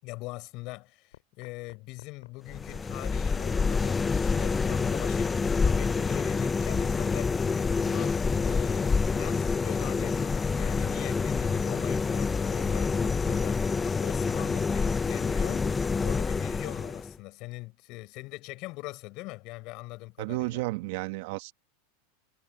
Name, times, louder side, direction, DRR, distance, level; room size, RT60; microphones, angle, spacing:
voice 1, 0.0-20.6, left 23 dB, 50° left, 7.7 m, -42 dB
sound 1, 1.1-14.0, left 13 dB, 80° left, 3.4 m, -52 dB
sound 2, 2.5-17.2, left 4 dB, 15° left, 0.7 m, -27 dB
voice 2, 20.2-21.5, right 21 dB, 65° right, 1.6 m, -32 dB
hypercardioid pair, 110°, 0 cm